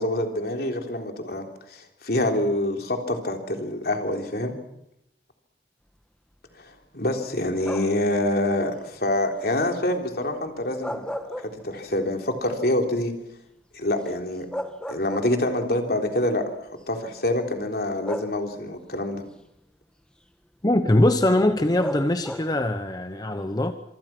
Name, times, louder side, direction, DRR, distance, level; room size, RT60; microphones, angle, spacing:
voice 1, 0.0-4.6 6.6-11.1 11.5-13.1 13.7-14.5 14.9-16.4 16.9-19.2, left 1 dB, 55° left, 3.6 m, -26 dB
sound 1, 7.6-8.1 10.6-12.0 12.4-12.5 14.0-14.1 14.5-15.7 16.7-16.8 18.1-18.8 21.8-22.7, equal, 5° left, 1.3 m, -35 dB
voice 2, 20.6-23.7, left 1 dB, 20° left, 0.9 m, -22 dB
26.0 x 25.0 x 6.1 m
head